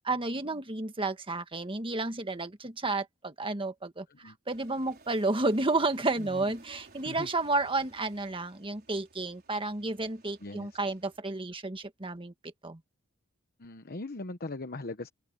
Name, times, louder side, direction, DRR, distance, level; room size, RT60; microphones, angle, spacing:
voice 1, 0.0-12.8, right 2 dB, 25° right, 1.6 m, -31 dB
Aircraft, 4.5-11.2, right 3 dB, 50° right, 4.8 m, -57 dB
voice 2, 6.2-6.5 7.0-7.3 10.4-10.8 13.6-15.1, left 2 dB, 50° left, 1.1 m, -40 dB
head